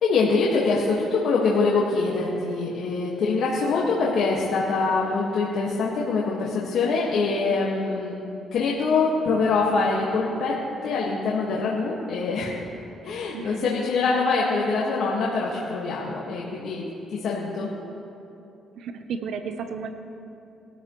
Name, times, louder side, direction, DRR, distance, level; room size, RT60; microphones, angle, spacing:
voice 1, 0.0-8.1 8.5-12.5 13.0-16.8 17.1-17.7, left 4 dB, 75° left, -4 dB, 1.7 m, -24 dB
voice 2, 13.3-13.7 18.8-19.9, right 6 dB, 75° right, 8 dB, 0.9 m, -33 dB
22.0 x 13.0 x 3.2 m, 2.9 s
cardioid pair, 90°, 0 cm